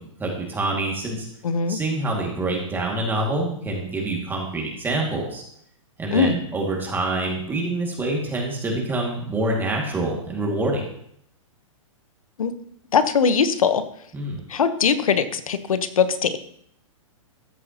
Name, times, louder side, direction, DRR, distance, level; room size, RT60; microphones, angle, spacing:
voice 1, 0.2-1.3 1.7-5.4 6.0-10.8 14.1-14.4, right 2 dB, 10° right, -1 dB, 2.2 m, -26 dB
voice 2, 1.4-1.8 6.1-6.4 12.4-12.5 12.9-13.8 14.5-16.4, left 6 dB, 85° left, 11 dB, 1.1 m, -21 dB
14.0 x 9.7 x 3.0 m, 0.68 s
hypercardioid pair, 140°, 17 cm